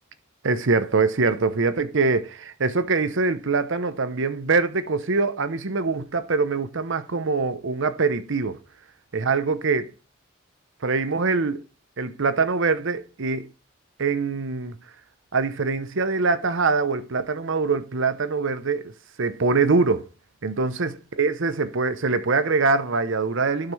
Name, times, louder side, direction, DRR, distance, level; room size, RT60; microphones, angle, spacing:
voice 1, 0.4-8.6 9.1-9.9 10.8-11.6 12.0-13.5 14.0-14.8 15.3-18.9 19.2-20.0 20.4-23.7, right 4 dB, 65° right, 0.8 m, -23 dB
12.0 x 5.8 x 3.3 m
head